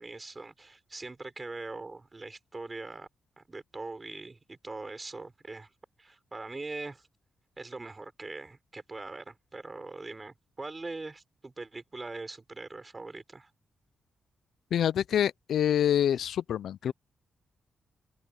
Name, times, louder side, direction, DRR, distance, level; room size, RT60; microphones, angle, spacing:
voice 1, 0.0-3.1 3.4-5.7 6.0-7.1 7.6-13.5, right 3 dB, 25° right, 5.9 m, -42 dB
voice 2, 14.7-16.9, left 10 dB, 80° left, 0.4 m, -26 dB
open air
cardioid pair, 105°, 0 cm